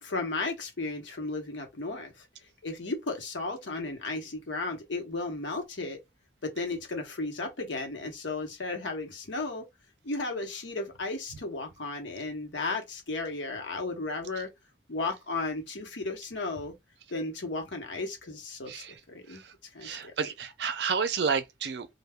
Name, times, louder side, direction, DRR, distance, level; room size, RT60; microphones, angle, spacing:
voice 1, 0.0-2.3 2.6-6.0 6.4-9.7 10.0-14.5 14.9-16.7 17.1-19.4 19.7-20.1, left 3 dB, 80° left, 0.9 m, -34 dB
voice 2, 19.8-21.9, right 5 dB, 65° right, 0.4 m, -30 dB
2.2 x 2.2 x 3.4 m
head